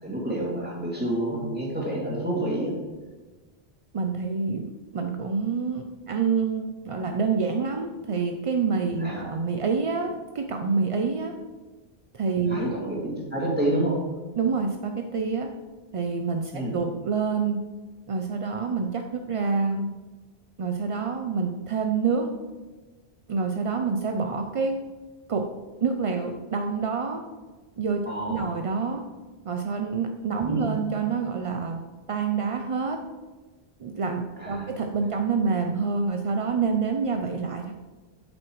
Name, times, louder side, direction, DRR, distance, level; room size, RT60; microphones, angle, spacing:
voice 1, 0.0-2.7 9.0-9.3 12.5-14.0 16.5-16.7 28.1-28.5 30.5-30.7 34.4-34.7, right 1 dB, 10° right, -5 dB, 2.4 m, -28 dB
voice 2, 3.9-11.3 12.1-12.8 14.4-15.5 15.9-17.6 18.1-19.9 20.6-22.3 23.3-24.8 25.3-25.5 25.8-27.2 27.8-29.0 29.4-31.8 32.1-33.0 33.8-37.7, right 5 dB, 50° right, 4 dB, 0.4 m, -27 dB
8.5 x 7.7 x 3.1 m, 1.3 s
omnidirectional pair, 1.1 m